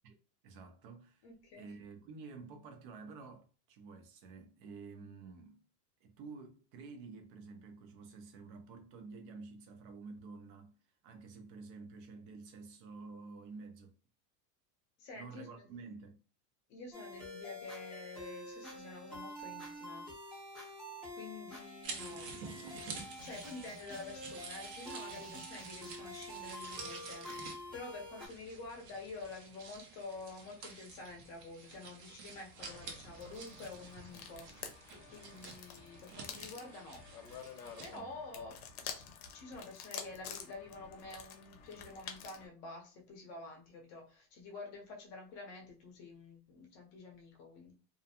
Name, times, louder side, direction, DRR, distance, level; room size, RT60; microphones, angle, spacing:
voice 1, 0.4-1.3 1.5-5.6 6.0-10.7 11.0-14.0 15.1-16.2 37.9-38.2, right 4 dB, 35° right, 0.4 m, -50 dB
voice 2, 1.2-1.7 15.0-15.5 16.7-20.1 21.1-22.3 22.8-34.7 35.1-37.0 37.8-39.0 39.3-47.7, left 3 dB, 35° left, 0.7 m, -49 dB
sound 1, 16.9-28.3, equal, ahead, 0.6 m, -47 dB
sound 2, 21.8-38.0, right 4 dB, 90° right, 0.9 m, -50 dB
sound 3, 32.6-42.5, left 7 dB, 65° left, 0.7 m, -49 dB
2.5 x 2.1 x 2.7 m
supercardioid pair, 160°, 47 cm